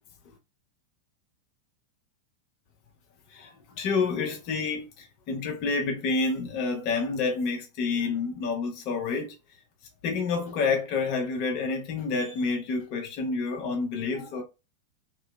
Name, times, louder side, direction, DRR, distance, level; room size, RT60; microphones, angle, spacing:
voice 1, 3.3-9.3 10.0-14.4, left 4 dB, 45° left, 0.6 m, -29 dB
3.0 x 2.7 x 2.2 m
figure-of-eight pair, 90°, 0 cm